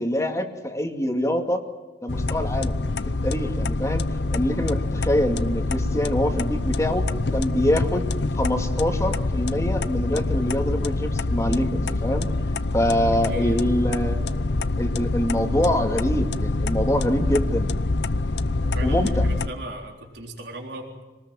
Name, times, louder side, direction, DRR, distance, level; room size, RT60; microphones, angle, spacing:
voice 1, 0.0-1.6 2.0-2.8 3.2-4.0 4.3-8.1 8.3-12.3 12.7-14.2 14.8-17.7 18.8-19.3, left 1 dB, 20° left, 4 dB, 2.3 m, -25 dB
sound 1, 2.1-19.5, left 2 dB, 75° left, 0.7 m, -25 dB
voice 2, 13.2-13.6 18.6-20.9, right 1 dB, 80° right, 1 dB, 3.8 m, -37 dB
26.5 x 19.5 x 7.7 m, 1.2 s
head